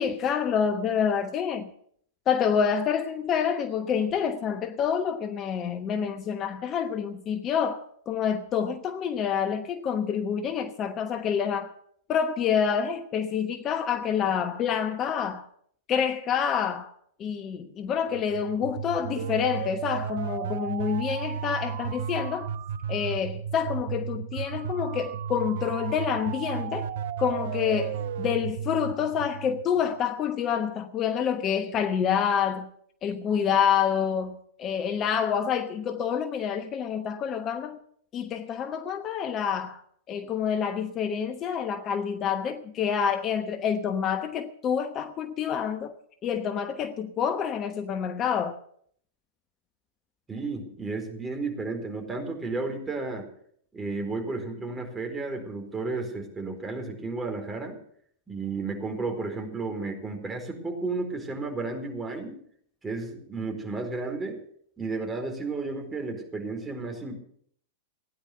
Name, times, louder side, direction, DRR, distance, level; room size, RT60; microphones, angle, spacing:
voice 1, 0.0-1.7 2.3-11.7 12.1-15.5 15.9-16.9 17.2-22.5 22.9-26.9 27.2-32.7 33.0-37.8 38.1-39.8 40.1-45.9 46.2-48.6, left 7 dB, 35° left, 1.1 m, -27 dB
sound 1, 18.1-30.0, right 7 dB, 60° right, 0.6 m, -34 dB
voice 2, 50.3-53.3 53.7-57.8 58.3-62.4 62.8-64.4 64.8-67.2, right 3 dB, 15° right, 4.6 m, -33 dB
17.0 x 10.0 x 6.9 m
figure-of-eight pair, 95°, 0 cm